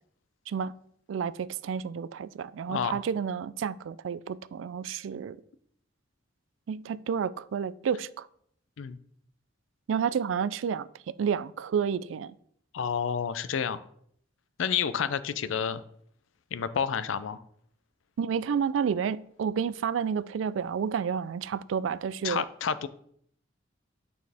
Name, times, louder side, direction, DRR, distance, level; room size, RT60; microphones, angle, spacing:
voice 1, 1.1-5.4 6.7-8.3 9.9-12.3 18.2-22.4, right 7 dB, 85° right, 0.3 m, -30 dB
voice 2, 12.7-13.8 14.6-15.8 16.5-17.4 22.2-22.9, left 7 dB, 85° left, 0.4 m, -29 dB
9.0 x 4.3 x 3.4 m
head